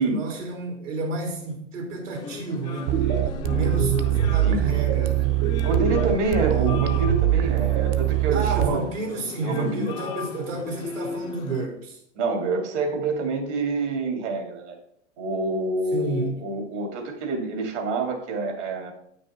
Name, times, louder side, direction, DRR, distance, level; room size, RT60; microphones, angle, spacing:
voice 1, 0.0-5.4 8.3-12.0 15.9-16.4, right 3 dB, 85° right, 1 dB, 3.5 m, -31 dB
sound 1, 2.1-11.7, left 5 dB, 15° left, 0.3 m, -36 dB
sound 2, 2.9-8.7, right 13 dB, 50° right, 0.8 m, -22 dB
voice 2, 5.6-8.8 9.4-9.9 12.2-14.8 15.2-18.9, right 3 dB, 70° right, 3 dB, 2.7 m, -27 dB
8.8 x 6.0 x 4.3 m, 0.73 s
hypercardioid pair, 130°, 36 cm